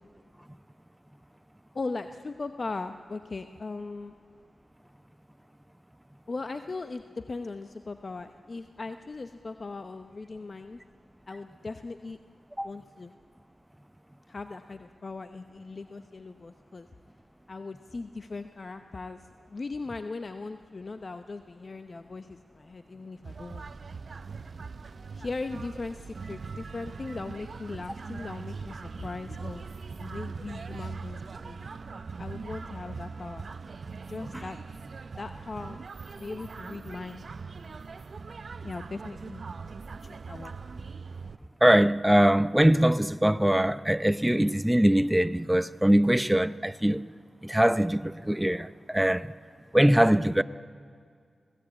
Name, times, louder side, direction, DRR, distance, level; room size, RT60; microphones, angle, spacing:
voice 1, 1.7-4.1 6.3-10.8 11.3-12.2 12.6-13.1 14.3-16.9 17.5-19.2 19.5-23.7 25.1-29.6 29.9-31.7 32.2-33.5 34.1-34.6 35.2-35.8 36.2-37.3 38.6-39.5 40.0-40.5, left 3 dB, 55° left, 0.9 m, -39 dB
sound 1, 23.2-41.4, right 4 dB, 65° right, 0.7 m, -41 dB
voice 2, 41.6-47.0 47.4-49.3 49.7-50.4, right 1 dB, 10° right, 0.8 m, -22 dB
26.0 x 17.5 x 8.8 m
cardioid pair, 40°, 0 cm